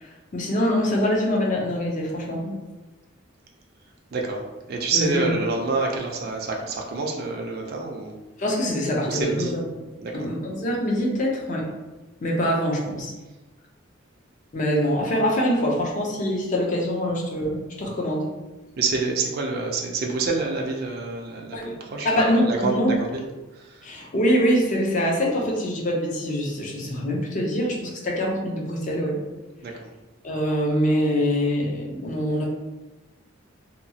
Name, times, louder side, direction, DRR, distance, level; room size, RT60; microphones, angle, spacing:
voice 1, 0.0-2.6 4.9-5.3 8.4-9.7 10.1-11.7 12.2-13.1 14.5-18.3 21.5-21.8 22.0-23.0 23.8-29.2 30.2-32.5, equal, 40° left, -1 dB, 0.6 m, -24 dB
voice 2, 4.1-4.4 4.7-8.1 9.1-9.5 10.0-10.3 18.8-21.6 21.8-23.2 23.6-23.8 29.6-29.7, right 3 dB, 50° right, 0 dB, 0.4 m, -27 dB
2.8 x 2.3 x 2.7 m, 1.1 s
head